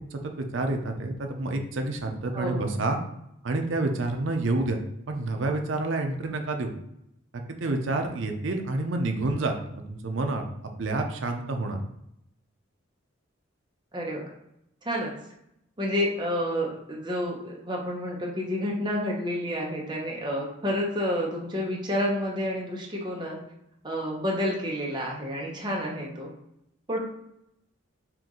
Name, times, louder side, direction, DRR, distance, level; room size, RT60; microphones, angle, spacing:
voice 1, 0.1-3.0 3.4-6.7 7.3-10.4 10.8-11.8, right 2 dB, 65° right, 4 dB, 0.6 m, -29 dB
voice 2, 2.3-2.7 13.9-14.3 14.8-15.1 15.8-23.4 23.8-26.3 26.9-27.0, equal, 20° right, -2 dB, 0.9 m, -29 dB
4.5 x 2.5 x 3.7 m, 0.80 s
head